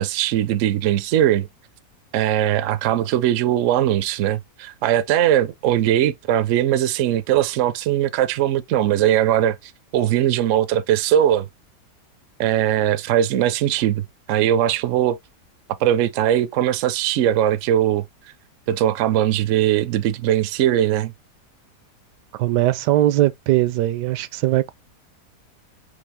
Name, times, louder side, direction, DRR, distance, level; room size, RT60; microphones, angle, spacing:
voice 1, 0.0-1.5 2.1-11.5 12.4-15.2 15.8-18.0 18.7-21.1, right 11 dB, 70° right, 0.7 m, -20 dB
voice 2, 22.3-24.7, right 15 dB, 85° right, 1.2 m, -20 dB
5.3 x 3.0 x 3.2 m
omnidirectional pair, 1.8 m